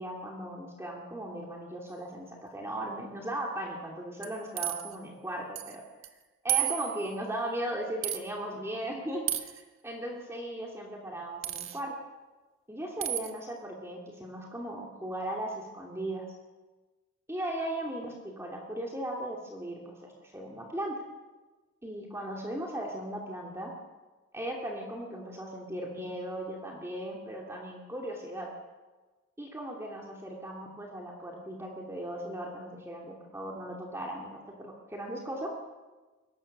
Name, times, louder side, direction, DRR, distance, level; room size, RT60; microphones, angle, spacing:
voice 1, 0.0-5.8 6.4-12.0 12.7-16.3 17.3-21.0 21.8-23.7 24.3-28.5 29.4-35.5, right 1 dB, 15° right, -1 dB, 2.5 m, -37 dB
sound 1, 4.2-4.9 5.6-5.8 6.0-6.1 6.5-7.2 8.0-8.2 9.3-9.6 11.4-11.8 13.0-13.3, right 14 dB, 75° right, 1.6 m, -32 dB
23.0 x 18.5 x 6.6 m, 1.2 s
head